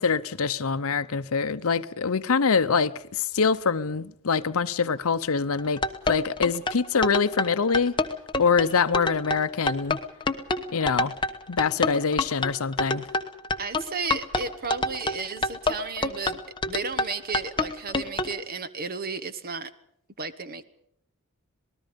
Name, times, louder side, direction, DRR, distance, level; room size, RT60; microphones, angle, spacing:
voice 1, 0.0-5.8 6.1-8.0 8.4-10.0 10.7-11.1 11.5-13.0, left 5 dB, 65° left, 0.7 m, -24 dB
sound 1, 5.6-18.3, left 2 dB, 20° left, 1.1 m, -27 dB
voice 2, 13.6-16.4 16.7-19.7 20.2-20.6, right 4 dB, 45° right, 1.2 m, -33 dB
27.5 x 19.5 x 5.2 m
head